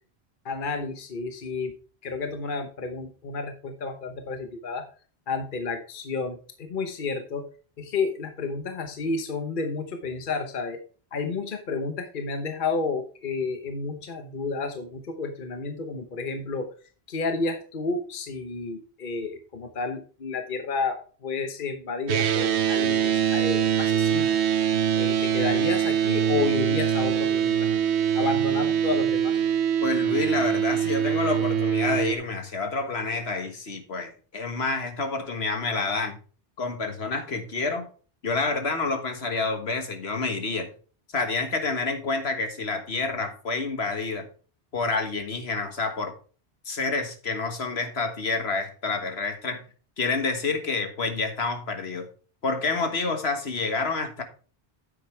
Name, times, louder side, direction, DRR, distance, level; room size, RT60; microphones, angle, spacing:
voice 1, 0.4-1.7 2.0-4.9 5.3-7.4 7.8-10.8 11.1-16.7 17.1-24.4 25.0-27.7 28.1-29.4, left 4 dB, 50° left, 6 dB, 1.2 m, -31 dB
sound 1, 22.1-32.1, right 8 dB, 80° right, 1.0 m, -23 dB
voice 2, 29.8-36.2 36.6-37.9 38.2-40.7 41.1-44.3 44.7-46.2 46.7-49.6 50.0-52.1 52.4-54.2, left 3 dB, 70° left, 6 dB, 1.7 m, -28 dB
9.7 x 7.8 x 3.3 m, 0.38 s
omnidirectional pair, 1.1 m